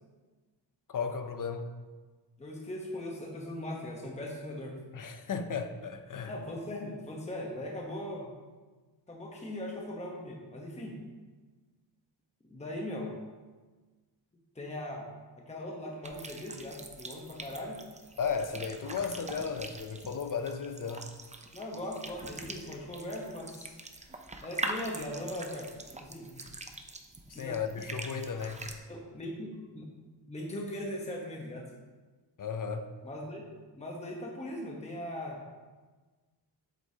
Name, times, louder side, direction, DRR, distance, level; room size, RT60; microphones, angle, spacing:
voice 1, 0.9-1.7 4.9-6.3 18.2-21.1 27.3-28.6 32.4-32.9, left 6 dB, 45° left, 8 dB, 0.6 m, -35 dB
voice 2, 2.4-4.8 6.3-8.4 9.1-11.0 12.4-13.2 14.5-15.1 15.3-17.8 21.5-23.7 24.4-25.7 26.0-26.5 27.3-27.6 28.9-29.9 30.3-31.7 33.0-35.4, left 1 dB, 15° left, -1 dB, 1.0 m, -39 dB
sound 1, 16.0-28.8, right 2 dB, 15° right, 0.5 m, -43 dB
8.0 x 7.8 x 2.8 m, 1.3 s
wide cardioid pair, 135°, 44 cm